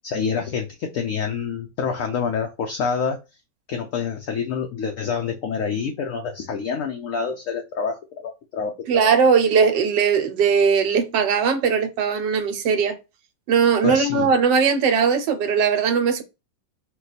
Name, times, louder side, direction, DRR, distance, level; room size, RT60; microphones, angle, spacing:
voice 1, 0.0-3.2 3.7-9.1 13.8-14.3, left 6 dB, 70° left, 0.8 m, -27 dB
voice 2, 8.9-13.0 13.5-16.2, right 6 dB, 75° right, 1.4 m, -19 dB
4.4 x 2.3 x 4.0 m
omnidirectional pair, 2.0 m